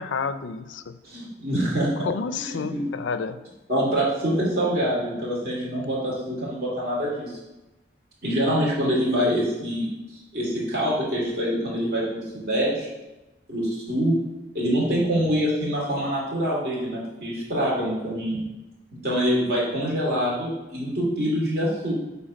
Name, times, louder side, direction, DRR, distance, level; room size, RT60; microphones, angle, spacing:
voice 1, 0.0-1.0 2.0-3.4, left 5 dB, 85° left, 11 dB, 0.5 m, -30 dB
voice 2, 1.0-1.9 2.4-2.8 3.7-7.4 8.2-9.9 10.3-12.9 13.5-14.2 14.5-18.4 19.0-22.0, equal, 55° right, -5 dB, 2.6 m, -25 dB
8.2 x 3.5 x 5.1 m, 1.0 s
head